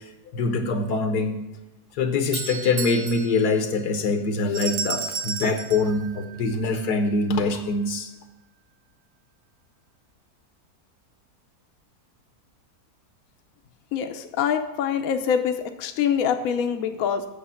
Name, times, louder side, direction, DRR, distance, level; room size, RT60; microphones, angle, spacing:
voice 1, 0.3-1.4 2.0-8.1, left 3 dB, 85° left, 7 dB, 1.5 m, -24 dB
Doorbell, 1.9-4.7, right 6 dB, 60° right, 1.1 m, -37 dB
sound 1, 4.5-7.0, right 5 dB, 80° right, 1.3 m, -32 dB
voice 2, 13.9-17.3, left 8 dB, 70° left, 6 dB, 1.0 m, -25 dB
8.7 x 6.6 x 5.6 m, 1.0 s
omnidirectional pair, 1.7 m